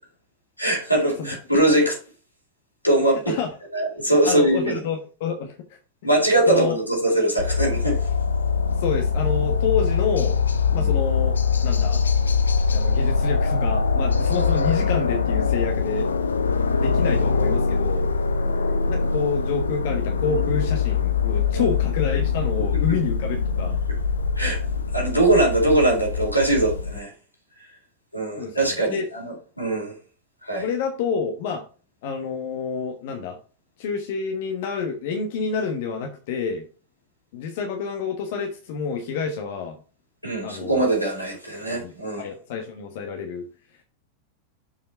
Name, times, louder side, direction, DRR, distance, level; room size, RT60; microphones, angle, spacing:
voice 1, 0.6-2.0 2.8-3.2 3.7-4.8 6.0-8.1 21.5-21.7 24.4-24.6 24.9-27.1 28.1-29.9 30.4-30.6 40.2-42.2, right 1 dB, 90° left, 3.7 m, -21 dB
voice 2, 4.0-5.8 6.5-6.8 8.7-10.4 10.7-11.3 11.6-12.0 12.7-16.1 16.7-18.1 18.8-23.8 28.4-29.1 30.6-31.6 32.0-33.4 33.8-36.7 37.3-39.8 40.4-40.8 41.7-41.9 42.2-43.8, left 6 dB, 50° left, 1.3 m, -28 dB
sound 1, 7.4-27.0, left 5 dB, 70° left, 0.7 m, -23 dB
7.1 x 5.5 x 4.4 m
figure-of-eight pair, 90°, 0 cm